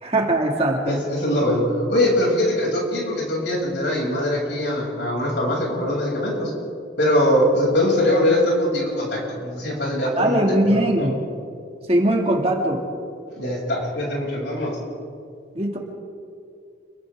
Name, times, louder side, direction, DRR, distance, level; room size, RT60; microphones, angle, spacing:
voice 1, 0.0-1.0 10.2-11.2 11.9-12.8 15.5-15.8, right 1 dB, 30° right, 0 dB, 2.5 m, -20 dB
voice 2, 0.8-6.5 7.0-10.4 10.7-11.1 13.4-14.8, left 1 dB, 70° left, -3 dB, 7.4 m, -22 dB
30.0 x 23.5 x 3.8 m, 2.4 s
head